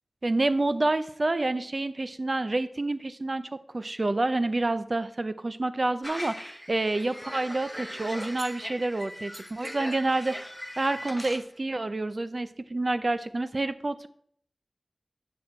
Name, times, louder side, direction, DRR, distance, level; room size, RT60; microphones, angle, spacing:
voice 1, 0.2-10.4 10.8-14.1, right 2 dB, 50° right, 12 dB, 0.6 m, -28 dB
sound 1, 6.0-11.4, equal, ahead, 1.0 m, -40 dB
9.4 x 6.2 x 4.4 m, 0.62 s
wide cardioid pair, 65°, 0 cm